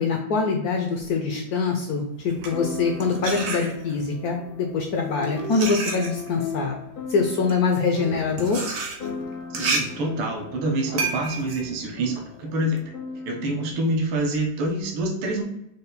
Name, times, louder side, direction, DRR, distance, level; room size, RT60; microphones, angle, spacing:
voice 1, 0.0-6.8 7.1-8.6, left 4 dB, 80° left, 2 dB, 0.8 m, -24 dB
sound 1, 1.0-1.1 2.5-13.7, left 3 dB, 60° left, 0.5 m, -38 dB
sound 2, 2.2-4.1 4.9-12.8, right 3 dB, 55° right, 1.0 m, -32 dB
voice 2, 9.5-12.8 13.3-15.4, right 1 dB, 80° right, 1 dB, 1.6 m, -26 dB
5.2 x 2.2 x 3.9 m, 0.83 s
omnidirectional pair, 2.2 m